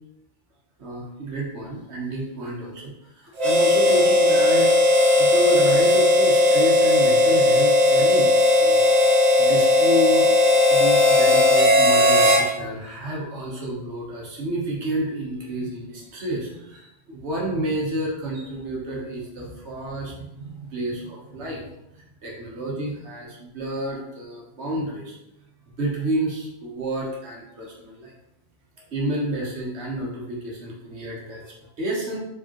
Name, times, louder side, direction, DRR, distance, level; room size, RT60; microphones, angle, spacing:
voice 1, 0.8-8.9 9.4-21.7 21.9-25.2 25.8-28.1 28.8-32.2, right 1 dB, 90° right, -2 dB, 1.4 m, -30 dB
Harmonica, 3.4-12.5, left 2 dB, 45° right, 0.7 m, -17 dB
4.8 x 3.5 x 3.0 m, 0.86 s
omnidirectional pair, 1.1 m